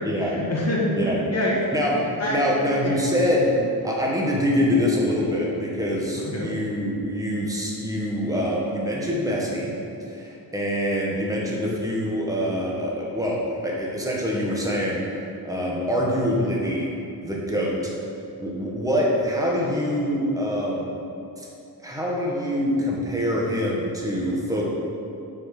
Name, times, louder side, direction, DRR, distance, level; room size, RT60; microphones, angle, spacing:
voice 1, 0.0-1.6 2.2-2.4 2.8-2.9 6.1-6.5, left 1 dB, 40° left, -4 dB, 1.7 m, -26 dB
voice 2, 1.7-3.6 3.8-9.7 10.1-15.0 15.4-16.9 17.2-17.9 18.4-20.9 21.4-21.5 21.8-24.6, equal, 10° right, -4 dB, 1.5 m, -25 dB
7.6 x 6.3 x 6.0 m, 2.7 s
wide cardioid pair, 140°, 38 cm